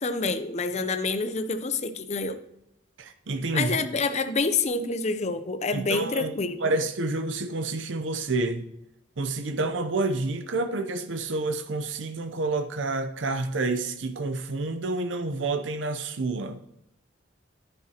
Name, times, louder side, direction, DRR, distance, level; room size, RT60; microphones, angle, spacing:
voice 1, 0.0-2.4 3.5-6.7, left 3 dB, 35° left, 0.6 m, -27 dB
voice 2, 3.0-3.8 5.7-6.3 6.6-8.7 9.2-16.6, right 2 dB, 85° right, 0.7 m, -29 dB
10.5 x 9.9 x 2.9 m
head